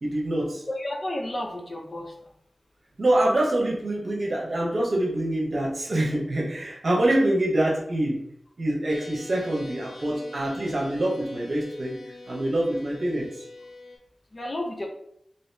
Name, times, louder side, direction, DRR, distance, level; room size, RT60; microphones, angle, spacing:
voice 1, 0.0-0.6 3.0-8.2 8.6-12.0 12.3-13.3, right 1 dB, 65° right, -2 dB, 0.9 m, -25 dB
voice 2, 0.7-2.1 14.3-14.9, left 1 dB, 50° left, 1 dB, 0.8 m, -32 dB
sound 1, 8.9-14.0, left 2 dB, 80° left, 1.1 m, -45 dB
2.9 x 2.8 x 3.3 m, 0.72 s
cardioid pair, 45°, 0 cm